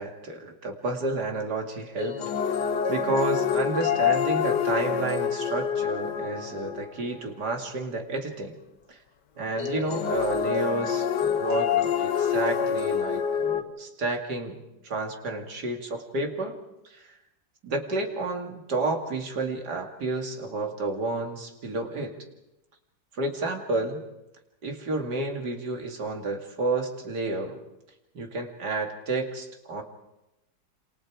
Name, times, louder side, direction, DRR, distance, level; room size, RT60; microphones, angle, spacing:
voice 1, 0.0-2.2 2.6-8.6 8.9-9.0 9.4-16.6 16.8-17.1 17.6-22.1 23.1-24.0 24.6-27.6 28.1-29.8, right 2 dB, 75° right, 3 dB, 3.0 m, -30 dB
sound 1, 2.0-7.0 9.6-13.6, left 7 dB, 80° left, 1.6 m, -27 dB
27.5 x 27.0 x 4.9 m, 0.94 s
omnidirectional pair, 1.8 m